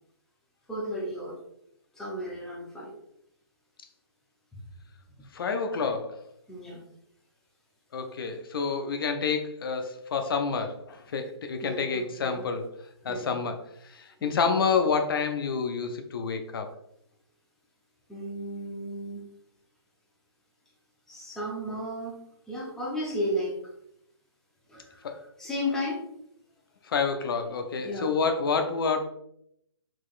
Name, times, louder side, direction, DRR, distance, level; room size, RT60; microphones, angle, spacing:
voice 1, 0.7-1.4 1.9-2.9 6.5-6.8 11.6-12.4 13.1-13.3 14.2-14.4 18.1-19.3 21.1-22.1 22.5-23.6 24.7-25.0 25.4-26.0 27.8-28.1, equal, 5° left, -4 dB, 0.5 m, -34 dB
voice 2, 5.3-6.2 7.9-12.8 13.0-16.7 25.0-25.2 26.8-29.1, left 5 dB, 55° left, 6 dB, 0.5 m, -28 dB
3.7 x 2.9 x 2.4 m, 0.74 s
hypercardioid pair, 150°, 14 cm